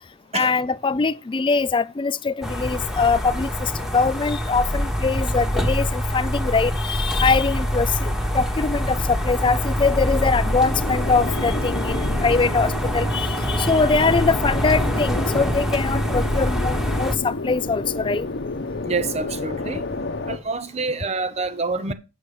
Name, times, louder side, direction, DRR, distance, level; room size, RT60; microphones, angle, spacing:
voice 1, 0.3-3.7 3.9-18.3 21.9-22.0, left 4 dB, 25° left, 0.4 m, -22 dB
sound 1, 2.4-17.2, equal, 5° right, 1.3 m, -25 dB
sound 2, 7.6-20.4, left 2 dB, 60° left, 0.8 m, -32 dB
voice 2, 18.9-19.8 20.3-21.9, right 3 dB, 35° right, 0.8 m, -27 dB
8.6 x 6.3 x 4.9 m
head